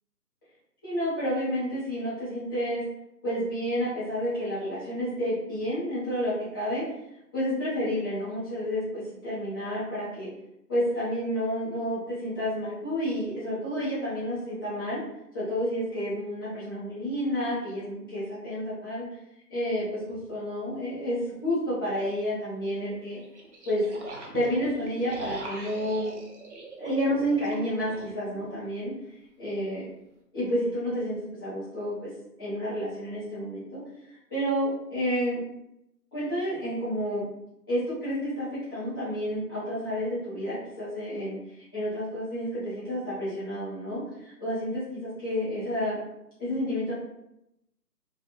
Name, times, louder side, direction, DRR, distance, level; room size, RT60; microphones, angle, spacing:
voice 1, 0.8-2.8 3.2-6.9 7.3-10.3 10.7-15.0 15.3-19.0 19.5-23.2 23.6-23.8 24.3-26.1 26.8-28.9 29.4-29.9 30.3-32.1 32.4-33.8 34.3-35.4 36.1-37.3 37.7-41.4 41.7-44.0 44.4-46.0 46.4-46.9, equal, 15° left, -12 dB, 0.8 m, -30 dB
sound 1, 20.1-20.2 23.0-28.5, right 2 dB, 45° right, 0.6 m, -42 dB
2.9 x 2.4 x 2.9 m, 0.85 s
figure-of-eight pair, 155°, 50 cm